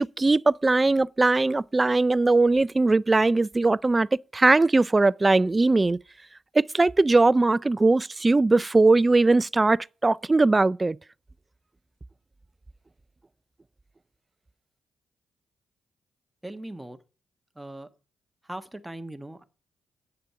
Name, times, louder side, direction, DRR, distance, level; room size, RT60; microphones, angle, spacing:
voice 1, 0.0-4.1 4.3-6.0 6.6-11.0, right 3 dB, 30° right, 0.4 m, -20 dB
voice 2, 16.4-17.0 17.5-17.9 18.4-19.4, right 1 dB, 10° right, 1.3 m, -39 dB
9.0 x 6.6 x 5.7 m
supercardioid pair, 45°, 0 cm